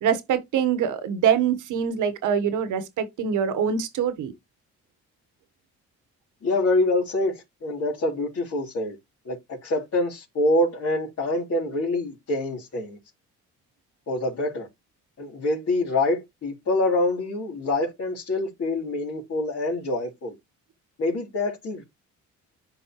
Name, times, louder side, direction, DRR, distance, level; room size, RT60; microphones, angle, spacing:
voice 1, 0.0-4.3, right 8 dB, 80° right, 1.4 m, -24 dB
voice 2, 6.4-9.0 9.3-13.0 14.1-14.7 15.2-20.4 21.0-21.8, left 2 dB, 55° left, 3.5 m, -26 dB
11.5 x 4.2 x 3.1 m
cardioid pair, 90°, 30 cm